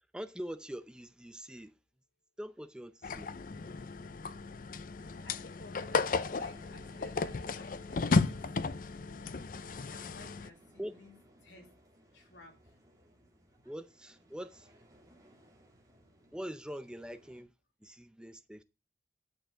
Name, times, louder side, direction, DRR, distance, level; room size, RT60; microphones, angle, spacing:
voice 1, 0.1-1.7 2.4-3.3 10.8-10.9 13.6-14.7 16.3-17.5 17.8-18.6, equal, 5° right, 0.5 m, -43 dB
sound 1, 3.0-10.5, left 4 dB, 50° left, 0.5 m, -34 dB
sound 2, 5.0-17.4, right 1 dB, 20° right, 2.6 m, -62 dB
voice 2, 5.2-9.1 9.8-11.2 11.4-11.7 12.1-12.8, left 1 dB, 85° left, 2.9 m, -55 dB
10.5 x 6.7 x 4.8 m
head